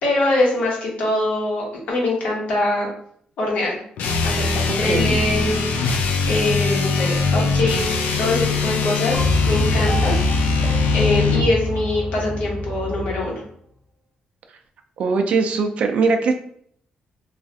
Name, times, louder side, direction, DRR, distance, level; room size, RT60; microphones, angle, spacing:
voice 1, 0.0-2.9 3.4-3.8 4.2-13.4, left 2 dB, 65° left, -2 dB, 1.0 m, -23 dB
sound 1, 4.0-11.5, left 4 dB, 80° left, 0.4 m, -22 dB
sound 2, 9.1-13.3, left 1 dB, ahead, 0.6 m, -24 dB
voice 2, 15.0-16.3, right 4 dB, 55° right, 5 dB, 0.4 m, -20 dB
3.1 x 2.4 x 2.6 m, 0.64 s
cardioid pair, 160°, 3 cm